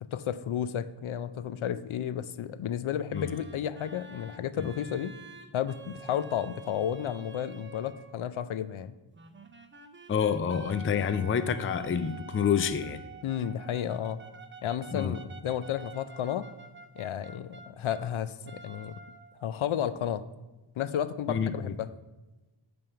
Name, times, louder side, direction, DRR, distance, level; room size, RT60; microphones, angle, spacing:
voice 1, 0.0-5.1 5.5-8.9 13.2-14.2 14.6-16.4 17.0-19.0 19.4-20.2 20.8-21.9, left 9 dB, 75° left, 13 dB, 0.6 m, -32 dB
sound 1, 3.1-8.2 9.1-18.1 18.4-19.5, right 4 dB, 25° right, 0.5 m, -49 dB
voice 2, 10.1-13.0 14.9-15.2 21.3-21.7, left 7 dB, 30° left, 11 dB, 0.4 m, -28 dB
9.1 x 3.5 x 6.8 m, 1.1 s
wide cardioid pair, 140°, 49 cm